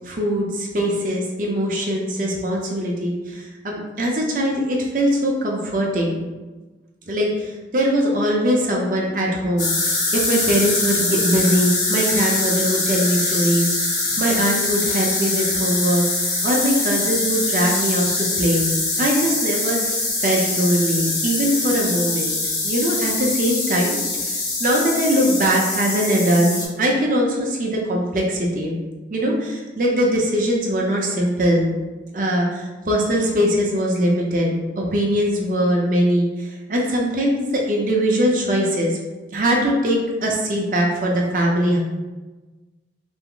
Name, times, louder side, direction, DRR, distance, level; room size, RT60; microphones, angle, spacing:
voice 1, 0.0-6.3 7.1-18.7 19.0-22.3 22.6-28.8 29.1-31.7 32.1-39.0 39.3-41.8, equal, 45° right, -1 dB, 0.6 m, -21 dB
sound 1, 9.6-26.7, left 2 dB, 45° left, 0.8 m, -23 dB
3.4 x 2.0 x 3.7 m, 1.2 s
head